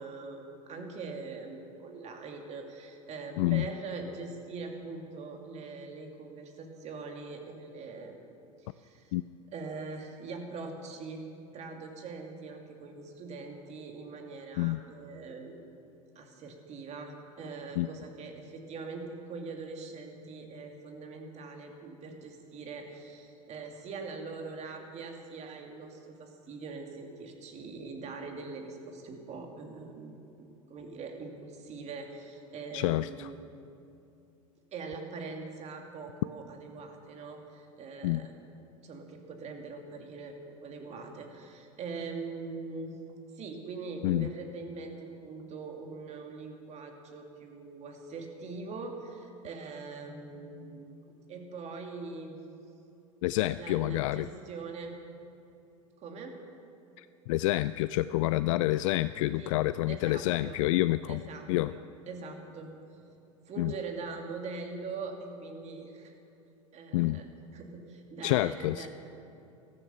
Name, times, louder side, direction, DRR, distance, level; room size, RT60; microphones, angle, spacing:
voice 1, 0.0-8.2 8.6-9.1 9.5-11.3 11.5-15.6 16.1-33.4 34.7-38.3 38.8-40.3 40.6-43.0 43.3-51.0 51.3-52.4 53.6-55.0 56.0-56.4 59.4-59.5 59.9-60.6 61.1-62.7 63.5-66.1 66.7-68.9, right 4 dB, 40° right, 3 dB, 2.5 m, -42 dB
voice 2, 32.7-33.3 38.0-38.3 44.0-44.3 53.2-54.3 57.0-61.2 61.5-61.7 63.6-63.7 66.9-67.2 68.2-68.9, left 17 dB, 65° left, 14 dB, 0.4 m, -28 dB
14.0 x 14.0 x 6.8 m, 2.8 s
hypercardioid pair, 90°, 18 cm